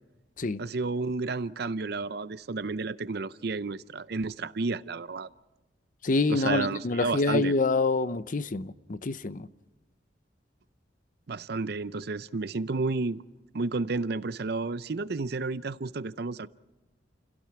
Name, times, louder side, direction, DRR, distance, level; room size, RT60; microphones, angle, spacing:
voice 1, 0.6-5.3 6.3-7.5 11.3-13.2 13.5-16.5, right 3 dB, 60° right, 0.6 m, -31 dB
voice 2, 6.0-9.5, left 3 dB, 45° left, 0.7 m, -27 dB
29.5 x 16.5 x 5.8 m
head